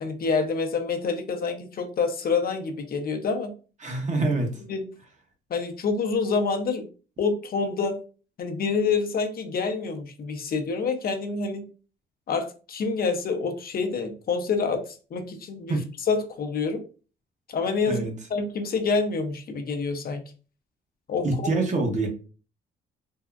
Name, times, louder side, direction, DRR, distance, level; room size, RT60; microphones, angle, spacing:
voice 1, 0.0-3.5 4.7-4.8 5.5-6.8 7.2-8.0 8.4-11.6 12.3-14.8 15.1-15.8 16.1-16.8 17.5-18.0 18.3-20.2 21.1-21.5, left 4 dB, 50° left, 4 dB, 0.5 m, -27 dB
voice 2, 3.8-4.5 15.7-15.8 17.9-18.1 21.2-22.1, right 2 dB, 35° right, 3 dB, 0.8 m, -25 dB
3.5 x 2.0 x 2.3 m, 0.36 s
cardioid pair, 90°, 20 cm